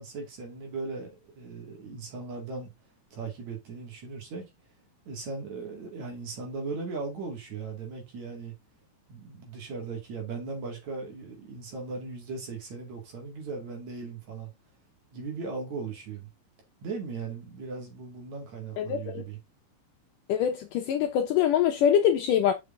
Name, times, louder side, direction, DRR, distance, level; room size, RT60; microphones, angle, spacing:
voice 1, 0.0-2.7 3.1-4.5 5.1-8.5 9.1-14.5 15.1-16.3 16.8-19.4, right 4 dB, 55° right, 3.5 m, -38 dB
voice 2, 18.8-19.2 20.3-22.5, left 9 dB, 75° left, 2.2 m, -24 dB
6.5 x 5.9 x 3.8 m
omnidirectional pair, 4.2 m